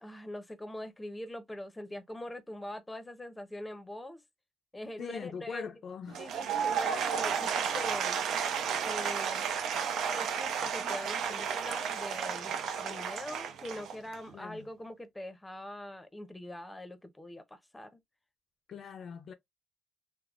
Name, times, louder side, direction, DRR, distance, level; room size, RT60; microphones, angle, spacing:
voice 1, 0.0-4.2 4.7-5.7 6.2-8.2 8.8-9.5 10.1-18.0, left 1 dB, 10° left, 0.6 m, -43 dB
voice 2, 5.0-6.2 14.3-14.7 18.7-19.3, left 6 dB, 60° left, 0.4 m, -41 dB
Applause / Crowd, 6.1-14.3, right 7 dB, 80° right, 0.5 m, -32 dB
3.3 x 2.0 x 2.4 m
cardioid pair, 90°, 0 cm